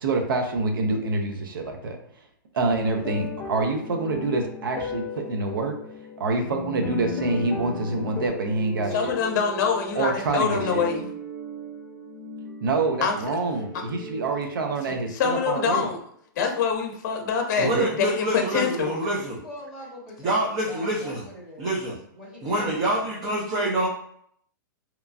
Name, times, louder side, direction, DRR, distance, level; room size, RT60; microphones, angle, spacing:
voice 1, 0.0-2.0 2.5-5.8 6.2-9.1 9.9-10.8 12.6-15.9 17.6-17.8, right 3 dB, 80° right, 4 dB, 0.6 m, -26 dB
sound 1, 2.7-8.3, left 6 dB, 20° left, 0.3 m, -36 dB
sound 2, 6.4-15.4, right 1 dB, 60° right, 1.0 m, -38 dB
voice 2, 8.9-11.0 13.0-13.2 15.1-16.0 16.4-19.0, left 6 dB, 55° left, 3 dB, 0.7 m, -25 dB
voice 3, 17.6-19.4 20.2-21.2 21.6-22.0 22.4-23.9, right 1 dB, 30° right, -4 dB, 0.6 m, -26 dB
voice 4, 18.8-21.8 22.2-23.0, left 1 dB, 5° right, -6 dB, 0.9 m, -43 dB
2.9 x 2.2 x 2.5 m, 0.67 s
hypercardioid pair, 150°, 11 cm